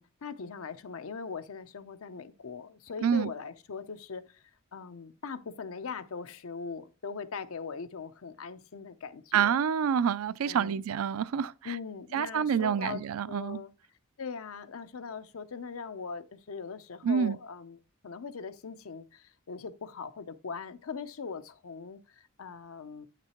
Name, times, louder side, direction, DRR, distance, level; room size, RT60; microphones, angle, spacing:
voice 1, 0.0-4.4 4.7-9.6 10.4-10.8 11.6-13.7 14.2-17.8 18.0-23.1, left 5 dB, 85° left, 0.6 m, -40 dB
voice 2, 3.0-3.3 9.3-11.8 12.1-13.6 17.0-17.4, right 7 dB, 85° right, 0.4 m, -27 dB
9.1 x 6.0 x 2.9 m
head